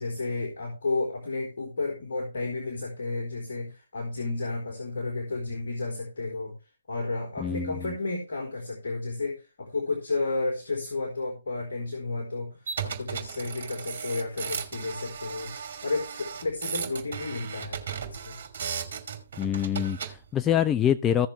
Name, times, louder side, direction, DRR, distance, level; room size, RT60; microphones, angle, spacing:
voice 1, 0.0-6.5 6.9-15.5 15.8-18.4, left 3 dB, 60° left, 3.9 m, -32 dB
voice 2, 7.4-7.9 19.4-21.3, left 9 dB, 15° left, 0.4 m, -25 dB
sound 1, 12.7-20.2, right 7 dB, 50° right, 3.0 m, -36 dB
16.0 x 7.1 x 3.2 m
figure-of-eight pair, 135°, 0 cm